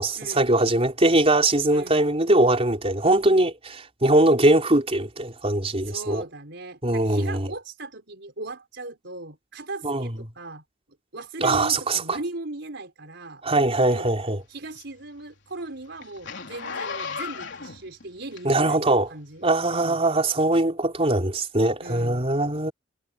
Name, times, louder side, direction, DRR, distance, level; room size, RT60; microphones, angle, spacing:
voice 1, 0.0-6.2 6.8-7.5 9.8-10.1 11.4-12.2 13.4-14.4 18.4-19.1 19.4-22.7, right 2 dB, 30° right, 4.2 m, -21 dB
voice 2, 5.8-10.6 11.1-13.4 13.9-14.1 14.5-20.0 21.8-22.3, right 2 dB, 60° right, 5.6 m, -38 dB
Zipper (clothing), 13.9-18.8 19.4-19.5, left 5 dB, 65° left, 4.3 m, -36 dB
head